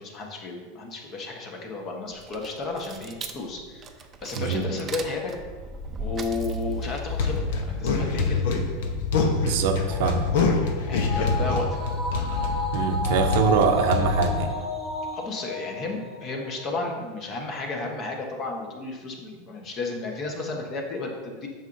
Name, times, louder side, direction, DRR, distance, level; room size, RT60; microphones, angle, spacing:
voice 1, 0.0-3.9 4.2-5.3 6.0-8.4 10.8-11.7 15.1-21.5, left 3 dB, 35° left, 1 dB, 1.2 m, -33 dB
sound 1, 2.1-8.6, right 2 dB, 25° right, 0.5 m, -37 dB
voice 2, 4.4-4.7 9.4-10.3 12.7-14.5, right 6 dB, 70° right, 6 dB, 0.7 m, -23 dB
sound 2, 7.1-14.4, left 4 dB, 70° left, 0.8 m, -26 dB
sound 3, 9.9-16.6 16.9-17.0, left 2 dB, 10° left, 0.8 m, -32 dB
8.0 x 5.9 x 2.7 m, 1.5 s
supercardioid pair, 135°, 0 cm